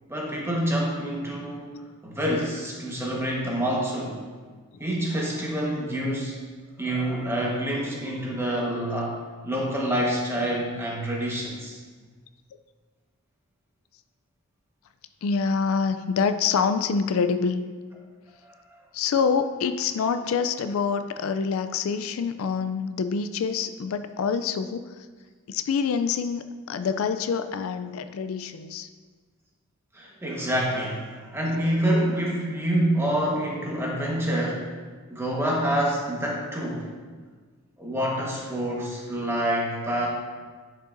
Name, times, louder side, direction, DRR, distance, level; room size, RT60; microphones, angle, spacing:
voice 1, 0.1-1.7 2.0-4.2 4.8-6.4 6.8-9.2 9.4-11.8 29.9-34.7 35.1-36.9 37.8-40.1, right 1 dB, 10° right, -3 dB, 1.2 m, -27 dB
voice 2, 15.2-17.6 18.9-24.9 25.5-28.9, left 5 dB, 70° left, 10 dB, 0.3 m, -26 dB
10.5 x 5.4 x 2.6 m, 1.5 s
head